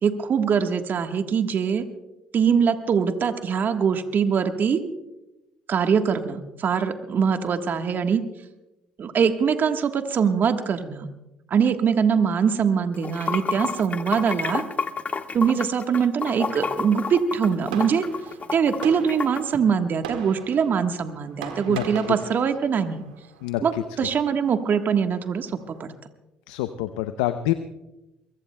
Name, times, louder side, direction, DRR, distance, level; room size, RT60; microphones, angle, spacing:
voice 1, 0.0-1.8 2.3-4.8 5.7-8.2 9.0-11.1 11.5-14.6 15.3-18.0 18.5-23.0 23.6-25.9, right 6 dB, 50° right, 7 dB, 1.3 m, -23 dB
Water / Sink (filling or washing), 12.9-19.4, left 5 dB, 35° left, 1.3 m, -30 dB
Fireworks, 16.5-25.8, right 7 dB, 90° right, 1.8 m, -42 dB
voice 2, 26.5-27.5, left 15 dB, 85° left, 11 dB, 0.6 m, -26 dB
23.0 x 23.0 x 2.2 m, 0.98 s
hypercardioid pair, 55°, 4 cm